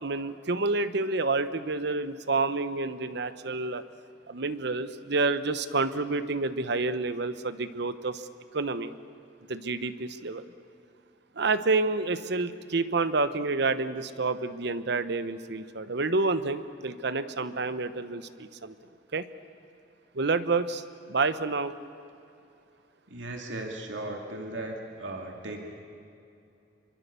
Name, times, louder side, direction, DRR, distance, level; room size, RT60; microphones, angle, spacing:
voice 1, 0.0-3.8 4.3-8.3 8.5-8.9 9.5-10.4 11.4-18.7 19.1-19.2 20.1-20.8 21.1-21.7, right 3 dB, 65° right, 12 dB, 1.0 m, -29 dB
voice 2, 23.1-25.6, right 2 dB, 85° right, 2 dB, 2.6 m, -37 dB
26.5 x 24.0 x 6.9 m, 2.7 s
head